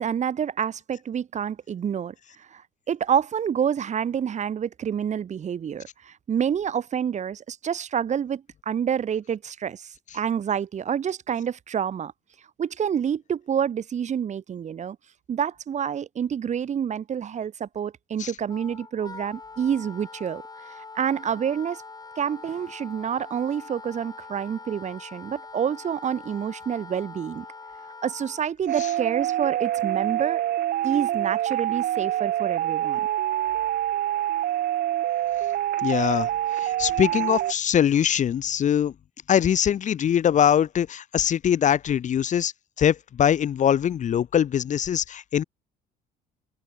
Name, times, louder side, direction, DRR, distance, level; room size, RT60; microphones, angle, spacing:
voice 1, 0.0-2.1 2.5-2.6 2.9-9.9 10.1-12.1 12.6-15.0 15.3-21.8 22.2-27.5 28.0-30.4 30.8-33.0, right 8 dB, 45° right, 2.5 m, -28 dB
Wind instrument woodwind instrument, 18.5-28.5, left 4 dB, 20° left, 7.7 m, -43 dB
sound 1, 28.7-37.5, right 13 dB, 65° right, 2.1 m, -26 dB
voice 2, 35.8-36.3 36.6-38.9 39.3-42.5 42.8-45.4, left 9 dB, 45° left, 1.2 m, -22 dB
open air
cardioid pair, 110°, 17 cm